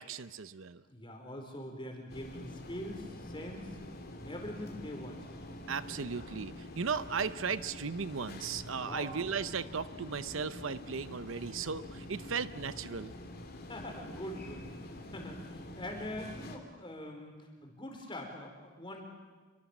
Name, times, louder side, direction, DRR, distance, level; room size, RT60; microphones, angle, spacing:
voice 1, 0.0-0.8 5.7-13.1, right 5 dB, 65° right, 14 dB, 0.7 m, -36 dB
voice 2, 0.9-3.8 4.2-5.3 8.8-9.1 12.2-12.4 13.6-19.0, left 1 dB, 25° left, 2 dB, 4.5 m, -43 dB
sound 1, 2.1-16.6, left 1 dB, 45° left, 3.0 m, -46 dB
28.5 x 23.5 x 7.3 m, 1.4 s
head